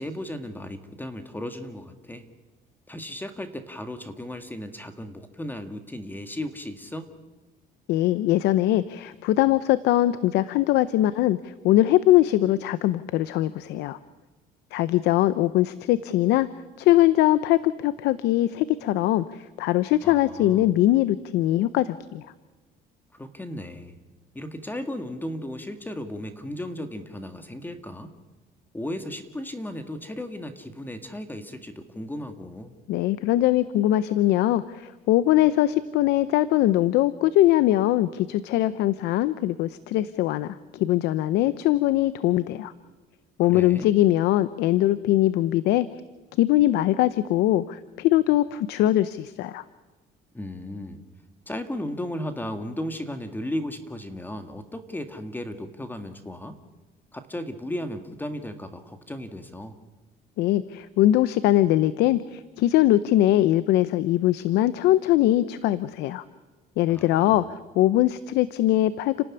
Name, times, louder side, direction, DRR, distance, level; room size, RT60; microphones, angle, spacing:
voice 1, 0.0-2.3 2.9-7.1 20.0-20.7 23.1-23.9 24.3-28.1 28.7-32.7 43.4-43.9 50.3-51.0 51.5-56.6 57.1-59.8 66.9-67.5, left 1 dB, 10° left, 8 dB, 1.8 m, -35 dB
voice 2, 7.9-14.0 14.7-16.5 16.8-22.3 32.9-42.7 43.4-45.9 46.4-49.6 60.4-66.2 66.8-67.4 67.8-69.3, left 14 dB, 85° left, 15 dB, 0.8 m, -21 dB
30.0 x 12.5 x 9.9 m, 1.2 s
cardioid pair, 110°, 17 cm